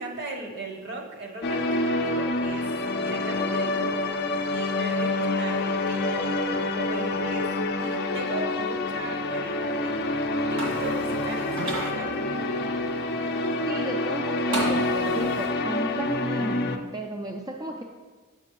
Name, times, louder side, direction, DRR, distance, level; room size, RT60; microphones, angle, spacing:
voice 1, 0.0-2.7 3.0-4.2 4.5-7.5 7.8-10.1 10.5-12.5, right 2 dB, 50° right, 1 dB, 1.0 m, -37 dB
sound 1, 1.4-16.8, left 2 dB, 45° left, 0.4 m, -27 dB
sound 2, 10.6-11.9 14.5-15.5, right 2 dB, 70° right, 1.9 m, -33 dB
voice 2, 13.7-16.6 16.9-17.8, right 1 dB, 15° right, 0 dB, 0.3 m, -33 dB
7.1 x 6.8 x 3.0 m, 1.4 s
head